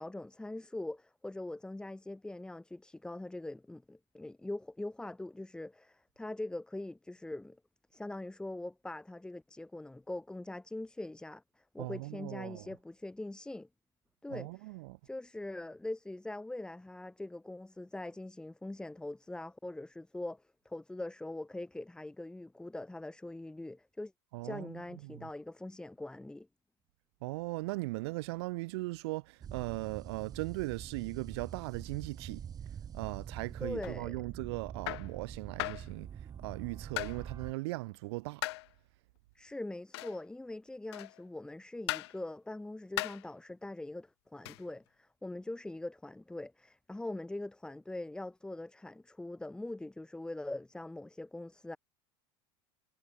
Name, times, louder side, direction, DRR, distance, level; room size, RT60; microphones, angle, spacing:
voice 1, 0.0-7.6 7.9-13.7 14.2-14.7 15.0-24.1 24.4-26.5 33.6-34.2 39.3-51.8, left 2 dB, 5° left, 2.1 m, -42 dB
voice 2, 11.8-12.8 14.3-15.0 24.3-25.3 27.2-32.5 32.9-38.4, right 23 dB, 75° right, 2.1 m, -39 dB
sound 1, 29.4-37.5, right 8 dB, 30° right, 1.9 m, -45 dB
sound 2, 33.8-34.0 34.9-35.1 35.6-35.9 37.0-37.2 38.4-38.7 39.9-40.2 40.9-41.2 41.9-42.2 43.0-43.3 44.4-44.7, left 20 dB, 80° left, 2.3 m, -37 dB
supercardioid pair, 125°, 14 cm